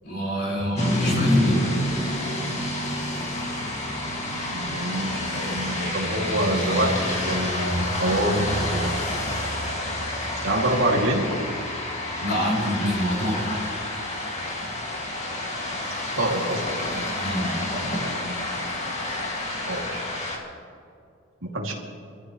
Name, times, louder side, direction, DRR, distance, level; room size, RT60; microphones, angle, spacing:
voice 1, 0.0-1.7 12.2-13.6 17.2-17.5, equal, 50° left, -4 dB, 4.9 m, -26 dB
sound 1, 0.8-20.4, left 1 dB, 35° left, 2.3 m, -28 dB
voice 2, 4.5-9.0 10.4-11.3 16.2-17.1 17.8-18.5 19.7-20.0 21.4-21.7, right 1 dB, 80° right, -1 dB, 2.7 m, -26 dB
25.5 x 14.5 x 3.2 m, 2.5 s
head